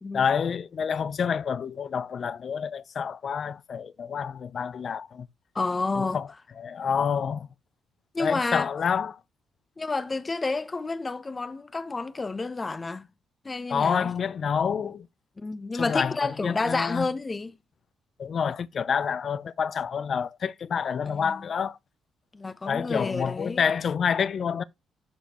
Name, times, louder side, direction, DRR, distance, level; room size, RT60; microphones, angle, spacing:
voice 1, 0.1-5.3 6.0-6.2 6.6-7.5 8.2-9.2 13.7-15.1 15.7-17.1 18.2-21.8 22.7-24.6, left 7 dB, 50° left, 0.6 m, -28 dB
voice 2, 5.5-6.2 8.1-8.7 9.8-13.1 13.4-14.1 15.4-17.5 21.0-21.5 22.3-23.7, left 3 dB, 25° left, 0.9 m, -30 dB
11.5 x 5.2 x 3.0 m
cardioid pair, 90°, 0 cm